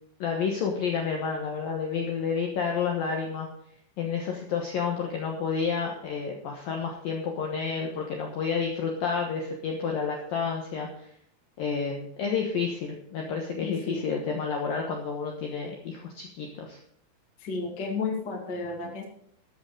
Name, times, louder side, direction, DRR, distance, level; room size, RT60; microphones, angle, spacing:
voice 1, 0.2-3.5 4.0-10.9 11.6-16.8, left 5 dB, 70° left, 1 dB, 2.2 m, -30 dB
voice 2, 13.6-14.0 17.4-19.0, left 4 dB, 45° left, 1 dB, 1.4 m, -32 dB
13.5 x 8.1 x 4.9 m, 0.71 s
omnidirectional pair, 5.8 m